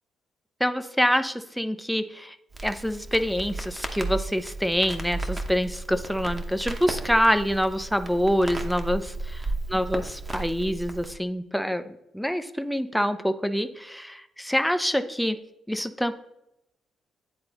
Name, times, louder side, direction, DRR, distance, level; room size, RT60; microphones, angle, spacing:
voice 1, 0.6-2.4 2.6-15.4 15.7-16.1, equal, ahead, 9 dB, 0.4 m, -26 dB
Crackle, 2.5-11.1, right 2 dB, 25° right, 0.8 m, -34 dB
9.6 x 3.8 x 2.9 m, 0.85 s
cardioid pair, 90°, 0 cm